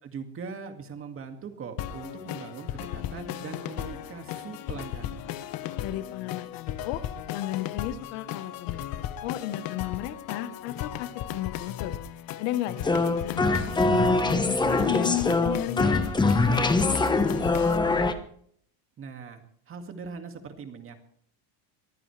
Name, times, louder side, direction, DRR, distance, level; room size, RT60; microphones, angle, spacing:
voice 1, 0.0-5.2 19.0-19.4 19.7-20.9, right 5 dB, 30° right, 6 dB, 2.2 m, -41 dB
sound 1, 1.8-17.8, left 11 dB, 55° left, 1.2 m, -36 dB
voice 2, 5.8-7.0 7.3-12.0 12.4-18.1, left 13 dB, 80° left, 13 dB, 1.3 m, -34 dB
sound 2, 12.8-18.1, left 3 dB, 10° left, 1.0 m, -23 dB
23.0 x 15.0 x 3.3 m, 0.63 s
cardioid pair, 150°, 42 cm